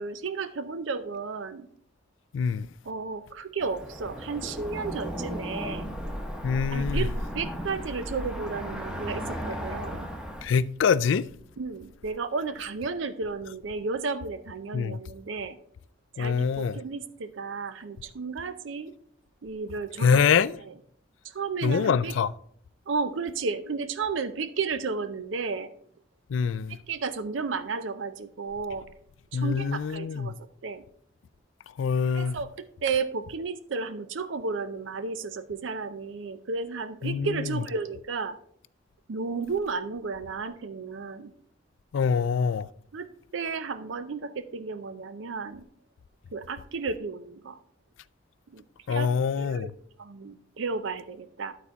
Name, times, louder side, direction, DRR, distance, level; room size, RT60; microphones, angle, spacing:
voice 1, 0.0-1.7 2.9-5.9 6.7-10.1 11.6-15.6 16.1-18.9 19.4-20.2 20.7-20.8 21.2-22.1 22.9-25.7 26.7-28.9 29.3-30.3 30.6-30.8 32.1-38.4 39.1-41.3 42.9-45.6 46.3-47.6 48.5-48.6 48.9-49.1 49.4-49.7 50.0-51.5, right 4 dB, 80° right, 0.5 m, -33 dB
voice 2, 2.3-2.7 6.4-7.1 10.4-11.3 14.7-15.0 16.2-16.8 20.0-20.6 21.6-22.3 26.3-26.8 29.3-30.3 31.8-32.4 37.0-37.6 41.9-42.7 48.9-49.7, left 6 dB, 85° left, 0.4 m, -25 dB
Cricket / Motor vehicle (road), 3.6-10.5, equal, 5° right, 0.9 m, -34 dB
12.0 x 4.2 x 4.5 m
head